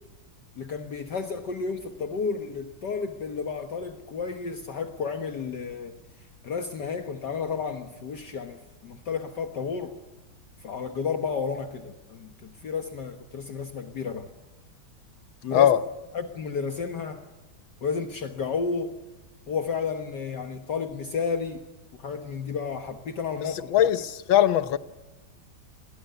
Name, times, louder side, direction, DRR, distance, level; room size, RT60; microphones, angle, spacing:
voice 1, 0.6-6.0 6.4-10.0 10.6-14.3 15.4-15.7 16.1-17.2 17.8-18.9 19.5-21.6 21.9-24.0, left 5 dB, 60° left, 1.9 m, -32 dB
voice 2, 23.7-24.0 24.3-24.8, left 11 dB, 75° left, 1.8 m, -19 dB
28.0 x 22.0 x 6.9 m
omnidirectional pair, 2.2 m